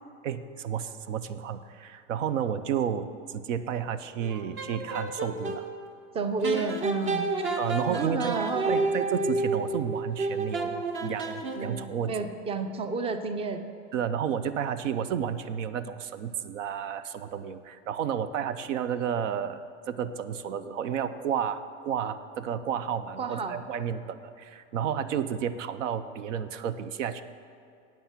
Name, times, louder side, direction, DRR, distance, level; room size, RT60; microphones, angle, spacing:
voice 1, 0.2-5.6 7.6-8.4 8.7-12.1 13.9-27.2, right 8 dB, 80° right, 13 dB, 0.7 m, -31 dB
sound 1, 4.2-5.6 6.4-11.9, right 3 dB, 35° right, 1.0 m, -30 dB
voice 2, 6.1-7.3 7.9-8.8 12.1-13.6 23.2-23.6, right 4 dB, 15° right, 9 dB, 0.6 m, -30 dB
9.1 x 7.9 x 6.0 m, 2.5 s
hypercardioid pair, 115°, 37 cm